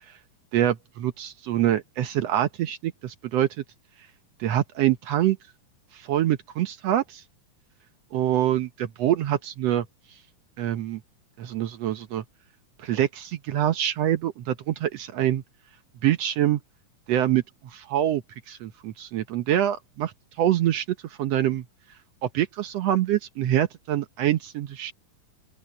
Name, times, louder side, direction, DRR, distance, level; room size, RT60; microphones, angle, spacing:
voice 1, 0.5-3.6 4.4-5.4 5.9-7.2 8.1-9.9 10.6-11.0 11.4-12.2 12.8-15.4 16.0-16.6 17.1-21.6 22.2-24.9, right 12 dB, 70° right, 1.6 m, -25 dB
open air
omnidirectional pair, 3.7 m